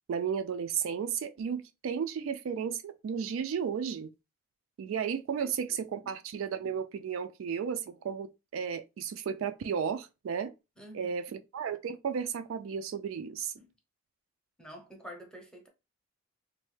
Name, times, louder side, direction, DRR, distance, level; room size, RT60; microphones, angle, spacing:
voice 1, 0.1-4.1 4.8-10.5 10.9-13.5, right 7 dB, 80° right, 0.3 m, -34 dB
voice 2, 5.4-5.8 6.0-6.1 10.8-11.4 13.6-13.7 14.6-15.7, equal, 5° left, 0.7 m, -49 dB
3.1 x 2.1 x 3.1 m
head